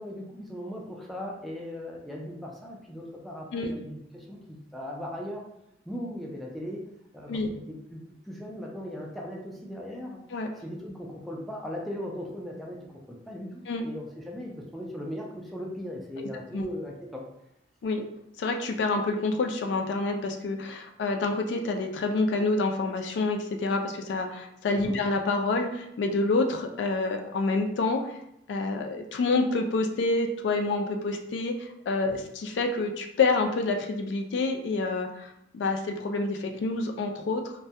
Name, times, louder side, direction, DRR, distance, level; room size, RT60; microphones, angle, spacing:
voice 1, 0.0-5.4 5.9-6.8 7.1-10.2 10.6-13.5 13.8-17.3 24.8-25.0 32.0-32.1, equal, ahead, -2 dB, 0.3 m, -38 dB
voice 2, 16.2-16.6 17.8-18.0 18.4-28.1 28.5-37.5, left 3 dB, 80° left, 4 dB, 0.3 m, -28 dB
2.2 x 2.1 x 2.7 m, 0.78 s
head